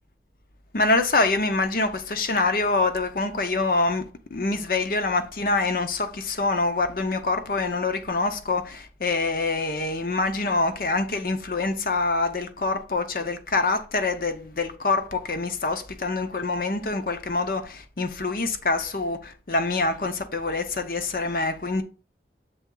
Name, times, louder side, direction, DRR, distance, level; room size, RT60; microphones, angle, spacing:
voice 1, 0.7-4.0 4.3-21.8, left 3 dB, 55° left, 0.7 m, -25 dB
7.0 x 3.6 x 3.8 m
head